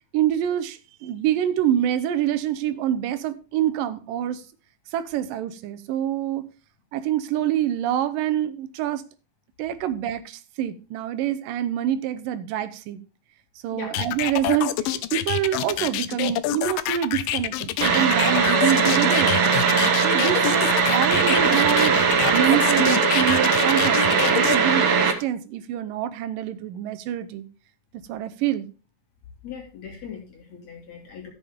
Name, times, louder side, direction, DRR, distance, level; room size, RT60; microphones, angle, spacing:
voice 1, 0.1-4.4 4.9-6.4 6.9-9.0 9.6-13.0 13.6-22.0 22.3-27.5 28.1-28.7, right 11 dB, 80° right, 13 dB, 2.5 m, -26 dB
sound 1, 13.9-24.6, left 13 dB, 80° left, 2.3 m, -27 dB
sound 2, 17.8-25.1, right 5 dB, 55° right, 1.9 m, -20 dB
voice 2, 29.4-31.3, left 6 dB, 55° left, 0 dB, 3.4 m, -39 dB
13.5 x 7.0 x 3.6 m, 0.34 s
omnidirectional pair, 3.9 m